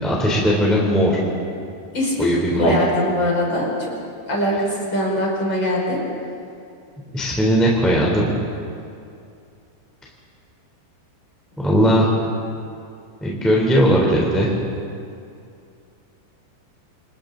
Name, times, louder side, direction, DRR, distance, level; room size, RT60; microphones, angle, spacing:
voice 1, 0.0-1.2 2.2-2.7 7.1-8.3 11.6-12.1 13.2-14.5, equal, ahead, -3 dB, 2.5 m, -18 dB
voice 2, 1.9-3.9 4.3-6.0, equal, 25° left, -4 dB, 5.5 m, -22 dB
29.0 x 28.0 x 4.0 m, 2.5 s
omnidirectional pair, 5.1 m